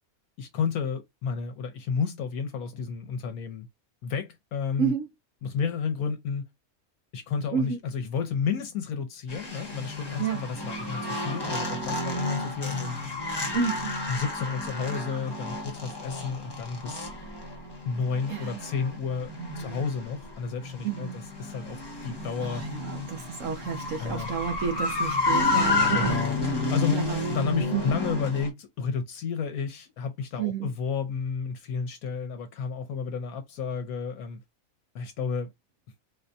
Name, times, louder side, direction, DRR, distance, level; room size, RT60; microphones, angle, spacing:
voice 1, 0.4-3.7 4.0-4.9 5.4-6.5 7.1-13.0 13.4-13.5 14.1-17.1 17.8-22.7 24.0-24.3 25.9-26.4 26.7-34.4 34.9-35.5, left 6 dB, 80° left, 1.3 m, -31 dB
sound 1, 9.3-28.5, left 2 dB, 20° left, 0.9 m, -31 dB
voice 2, 13.5-13.9 18.3-18.7 19.4-19.9 20.8-21.2 22.4-26.2 26.9-27.2 27.7-28.0 30.4-30.7, right 7 dB, 65° right, 1.0 m, -31 dB
4.1 x 2.2 x 2.7 m
omnidirectional pair, 1.5 m